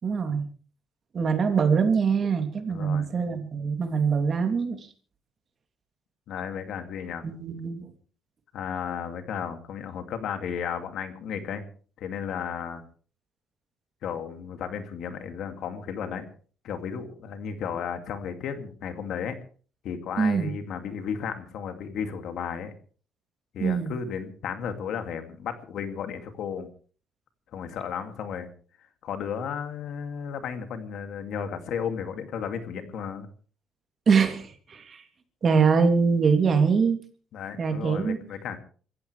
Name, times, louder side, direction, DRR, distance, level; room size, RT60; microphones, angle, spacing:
voice 1, 0.0-0.5 1.1-4.9 7.2-7.9 20.2-20.5 23.6-23.9 34.1-35.0 35.4-37.0 37.6-38.2, right 5 dB, 45° right, 6 dB, 3.0 m, -23 dB
voice 2, 2.7-3.1 6.3-7.2 8.5-11.6 12.0-12.8 14.0-16.2 16.6-19.4 19.8-22.7 23.5-26.7 27.5-28.5 29.0-33.3 37.3-38.6, left 7 dB, 70° left, 7 dB, 2.4 m, -34 dB
26.0 x 15.0 x 3.4 m, 0.42 s
cardioid pair, 105°, 0 cm